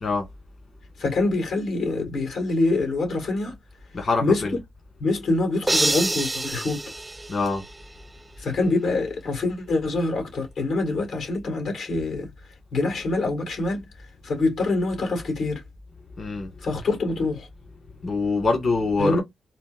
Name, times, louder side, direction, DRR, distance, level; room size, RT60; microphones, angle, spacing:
voice 1, 1.0-3.6 4.2-4.4 5.0-6.8 8.4-12.3 12.7-13.8 14.2-15.6 16.6-17.5 19.0-19.2, left 2 dB, 85° left, 2.1 m, -25 dB
voice 2, 3.9-4.5 7.3-7.6 16.2-16.5 18.0-19.2, left 3 dB, 50° left, 1.5 m, -24 dB
sound 1, 5.7-8.0, right 2 dB, 15° right, 0.3 m, -27 dB
4.2 x 2.1 x 2.5 m
cardioid pair, 100°, 0 cm